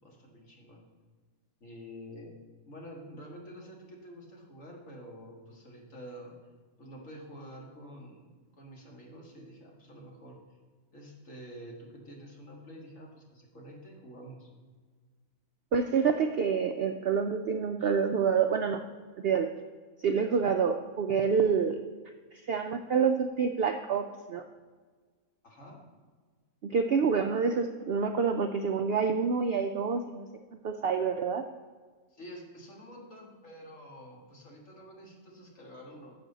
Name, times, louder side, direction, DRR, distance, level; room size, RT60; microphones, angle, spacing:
voice 1, 0.0-0.8 1.6-2.4 2.7-6.4 6.8-10.3 10.9-14.5 25.4-25.8 32.1-36.1, equal, 60° left, -1 dB, 2.2 m, -48 dB
voice 2, 15.7-18.8 19.2-19.5 20.0-21.8 22.3-24.4 26.6-30.3 30.6-31.5, right 6 dB, 65° right, 6 dB, 0.6 m, -27 dB
11.0 x 7.1 x 3.9 m, 1.5 s
omnidirectional pair, 1.5 m